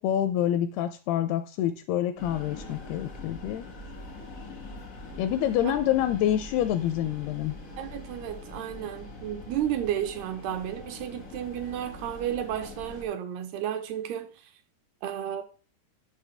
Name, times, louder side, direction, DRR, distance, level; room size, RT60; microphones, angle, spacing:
voice 1, 0.0-3.7 5.2-7.6, left 11 dB, 85° left, 2.3 m, -27 dB
sound 1, 2.2-13.1, left 2 dB, 65° left, 0.8 m, -43 dB
voice 2, 7.8-14.3 15.0-15.4, right 10 dB, 80° right, 2.6 m, -32 dB
11.5 x 6.4 x 3.3 m
omnidirectional pair, 4.9 m